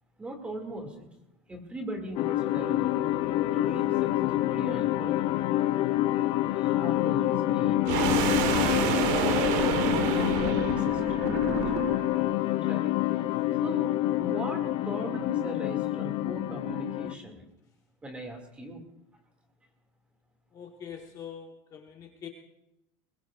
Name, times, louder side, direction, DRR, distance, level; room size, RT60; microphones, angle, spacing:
voice 1, 0.2-1.1 1.5-2.9 3.5-5.3 6.5-9.8 10.4-11.3 12.6-12.9 13.6-17.4 18.0-18.8, right 1 dB, 10° right, 3 dB, 2.1 m, -39 dB
sound 1, 2.2-17.1, left 15 dB, 45° left, 0.5 m, -27 dB
sound 2, 7.9-12.2, right 8 dB, 55° right, 1.3 m, -29 dB
voice 2, 20.5-22.3, left 8 dB, 25° left, 2 dB, 1.2 m, -43 dB
21.5 x 21.5 x 2.4 m, 0.88 s
cardioid pair, 175°, 13 cm